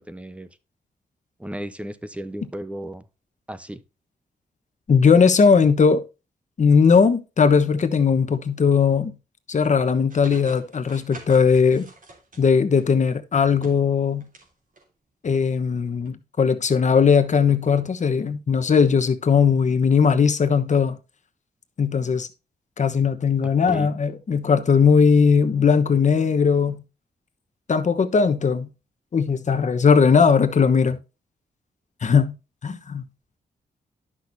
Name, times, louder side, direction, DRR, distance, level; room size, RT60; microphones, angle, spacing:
voice 1, 0.1-0.5 1.4-3.1 3.5-3.8 23.4-24.0, right 1 dB, 5° right, 0.8 m, -34 dB
voice 2, 4.9-6.0 6.6-9.1 9.5-11.9 12.4-14.3 15.2-21.0 21.8-22.3 22.8-26.8 27.7-28.7 29.1-31.0 32.0-32.3 32.6-33.0, left 6 dB, 45° left, 1.1 m, -18 dB
sound 1, 10.1-12.9 13.4-14.5 14.8-14.9 16.0-16.1, right 2 dB, 55° right, 3.2 m, -45 dB
11.5 x 6.3 x 2.7 m
cardioid pair, 95°, 17 cm